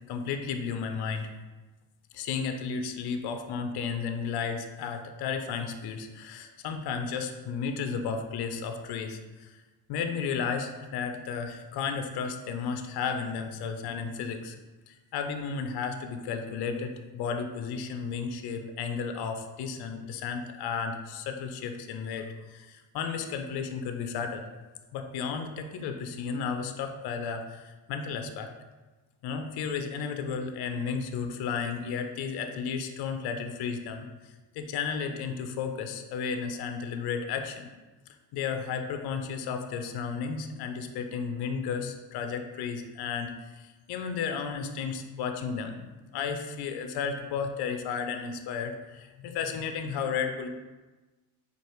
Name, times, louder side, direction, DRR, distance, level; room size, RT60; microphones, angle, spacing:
voice 1, 0.1-1.3 2.1-9.6 9.9-14.6 14.9-24.4 24.9-28.5 29.2-37.7 38.3-50.5, left 6 dB, 55° left, 6 dB, 0.6 m, -33 dB
4.5 x 2.5 x 3.1 m, 1.2 s
hypercardioid pair, 65°, 49 cm